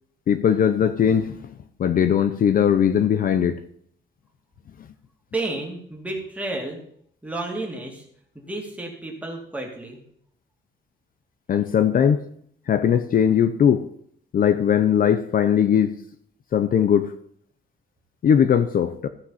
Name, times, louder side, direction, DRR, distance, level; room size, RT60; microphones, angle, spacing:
voice 1, 0.3-1.5 1.8-3.6 11.5-12.2 12.7-13.8 14.3-15.9 16.5-17.1 18.2-19.1, left 8 dB, 50° left, 10 dB, 0.6 m, -19 dB
voice 2, 5.3-6.8 7.2-8.1 8.3-10.0, right 2 dB, 5° right, -1 dB, 2.3 m, -31 dB
15.0 x 6.1 x 5.6 m, 0.66 s
wide cardioid pair, 170°, 19 cm